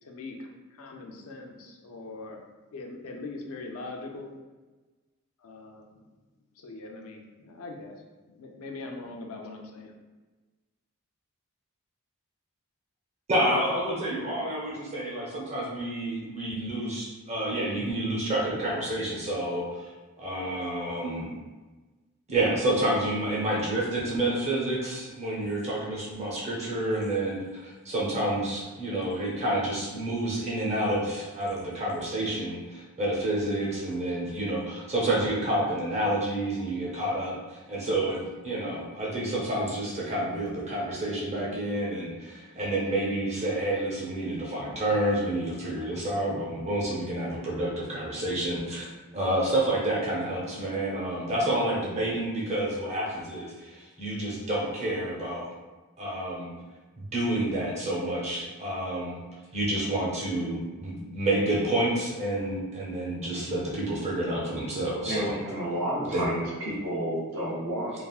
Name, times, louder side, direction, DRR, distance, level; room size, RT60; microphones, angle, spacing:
voice 1, 0.0-2.4 2.7-4.3 5.4-6.0 6.6-8.0 8.3-9.9, left 3 dB, 70° left, 2 dB, 0.4 m, -41 dB
voice 2, 13.3-19.9 20.2-21.3 22.3-48.9 49.1-55.4 56.0-56.5 57.0-59.2 59.5-65.4 66.1-66.3, right 1 dB, 30° right, -5 dB, 0.7 m, -29 dB
voice 3, 65.0-67.9, right 1 dB, 70° right, -7 dB, 1.1 m, -31 dB
3.3 x 2.0 x 2.3 m, 1.2 s
head